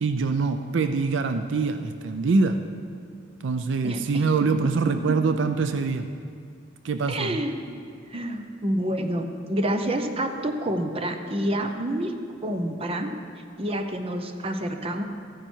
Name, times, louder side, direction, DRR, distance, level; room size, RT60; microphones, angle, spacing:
voice 1, 0.0-2.6 3.4-6.1 6.8-7.4, right 4 dB, 70° right, 8 dB, 0.5 m, -24 dB
voice 2, 3.8-4.2 5.1-5.2 7.1-7.8 8.1-12.1 12.4-13.1 13.6-15.0, right 1 dB, 30° right, 6 dB, 0.8 m, -28 dB
14.0 x 10.0 x 4.5 m, 2.2 s
head